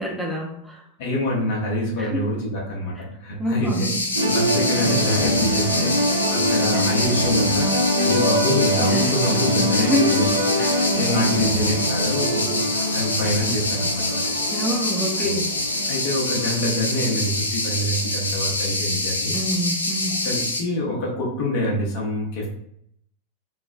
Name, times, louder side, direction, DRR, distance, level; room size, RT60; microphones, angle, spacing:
voice 1, 0.0-0.8 2.0-2.2 3.0-3.1 3.4-3.9 6.7-7.0 8.9-9.1 9.7-10.3 10.6-10.9 11.2-11.7 14.5-15.5 19.3-20.2, equal, ahead, -3 dB, 0.5 m, -26 dB
voice 2, 1.0-3.9 4.2-6.0 6.3-10.3 10.8-14.3 15.9-19.3 20.2-22.5, left 1 dB, 50° left, -2 dB, 0.7 m, -26 dB
sound 1, 3.7-20.6, left 2 dB, 80° left, 0.4 m, -26 dB
sound 2, 4.1-17.9, equal, 80° right, 0.5 m, -24 dB
3.2 x 2.0 x 2.4 m, 0.73 s
figure-of-eight pair, 90°, 0 cm